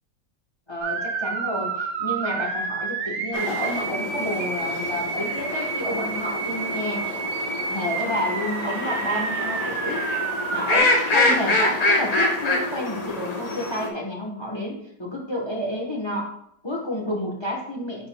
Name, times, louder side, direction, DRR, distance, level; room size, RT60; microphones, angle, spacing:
voice 1, 0.7-7.1 7.7-10.0 10.5-16.3 16.6-18.1, left 1 dB, 25° left, -1 dB, 0.7 m, -30 dB
sound 1, 0.8-10.8, right 5 dB, 80° right, 0.6 m, -29 dB
sound 2, 3.3-13.9, left 2 dB, 75° left, 0.3 m, -26 dB
10.5 x 4.5 x 2.2 m, 0.74 s
omnidirectional pair, 2.1 m